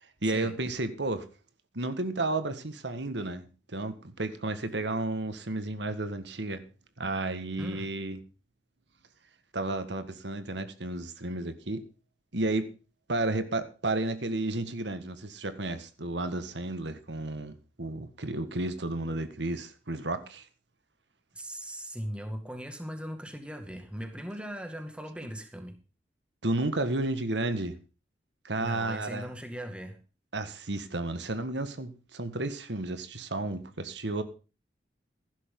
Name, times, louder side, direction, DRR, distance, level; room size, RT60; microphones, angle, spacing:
voice 1, 0.2-1.2 1.7-6.6 7.0-8.2 9.5-11.8 12.3-12.7 13.1-20.5 26.4-27.7 28.4-29.3 30.3-34.2, right 2 dB, 80° right, 10 dB, 1.8 m, -32 dB
voice 2, 7.6-7.9 21.3-25.8 28.6-30.0, equal, 5° right, 6 dB, 2.1 m, -39 dB
15.5 x 11.5 x 3.9 m, 0.34 s
head